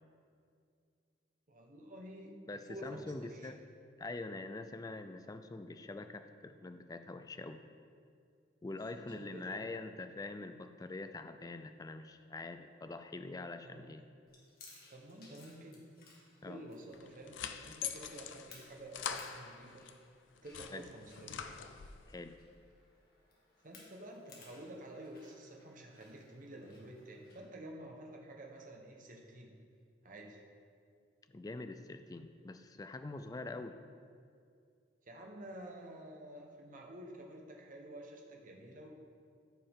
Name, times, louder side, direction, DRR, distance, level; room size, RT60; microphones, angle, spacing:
voice 1, 1.5-2.4 2.7-3.5 8.9-9.6 13.6-13.9 14.9-15.9 16.4-19.8 20.4-21.5 23.6-29.5 30.0-30.4 35.0-38.9, right 1 dB, 45° right, 0 dB, 1.1 m, -50 dB
voice 2, 2.5-3.6 4.0-7.6 8.6-14.0 16.4-16.6 20.7-20.8 22.1-22.4 31.3-33.8, left 2 dB, 20° left, 8 dB, 0.3 m, -44 dB
Chewing mastication, 14.3-27.4, left 3 dB, 55° left, 1.7 m, -61 dB
sound 1, 16.9-20.0 20.4-22.1, left 8 dB, 85° left, 0.5 m, -44 dB
14.0 x 5.6 x 3.6 m, 2.3 s
head